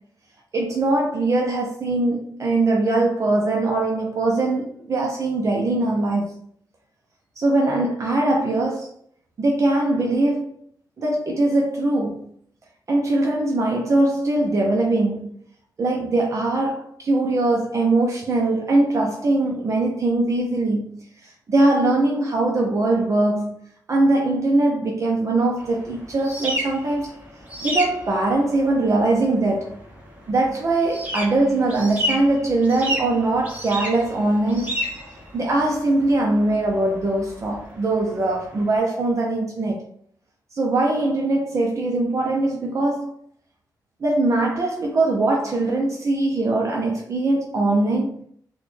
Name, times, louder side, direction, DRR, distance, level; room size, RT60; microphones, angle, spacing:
voice 1, 0.5-6.3 7.4-8.9 9.4-10.5 11.0-12.3 12.9-15.3 15.8-27.1 27.6-29.8 30.3-34.8 35.3-39.8 40.5-43.1 44.0-48.2, right 2 dB, 45° right, 0.6 m, -21 dB
sound 1, 25.6-38.7, equal, 20° right, 1.1 m, -32 dB
4.0 x 2.3 x 3.2 m
wide cardioid pair, 135°, 7 cm